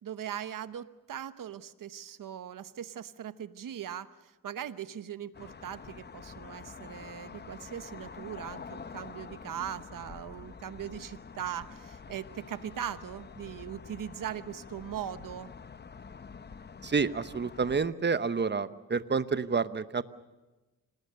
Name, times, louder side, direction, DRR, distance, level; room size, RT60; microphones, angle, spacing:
voice 1, 0.0-15.5, right 9 dB, 70° right, 13 dB, 1.0 m, -40 dB
sound 1, 5.3-17.9, left 5 dB, 30° left, 0.8 m, -47 dB
voice 2, 16.8-20.0, right 5 dB, 30° right, 13 dB, 1.0 m, -29 dB
26.5 x 19.0 x 6.6 m, 1.1 s
cardioid pair, 85°, 33 cm